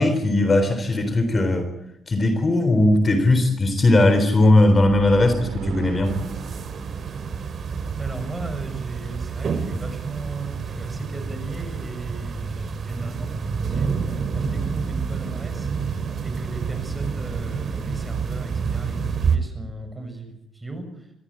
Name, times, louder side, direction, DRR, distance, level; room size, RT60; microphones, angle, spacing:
voice 1, 0.0-1.7 2.1-6.2, left 2 dB, 30° left, 9 dB, 3.8 m, -18 dB
sound 1, 4.7-8.4, right 8 dB, 85° right, 2.2 m, -36 dB
sound 2, 6.0-19.4, right 5 dB, 50° right, 3.1 m, -28 dB
voice 2, 8.0-15.7 16.2-21.1, right 2 dB, 15° right, 7 dB, 6.8 m, -36 dB
24.5 x 16.0 x 8.9 m, 0.76 s
cardioid pair, 90°, 0 cm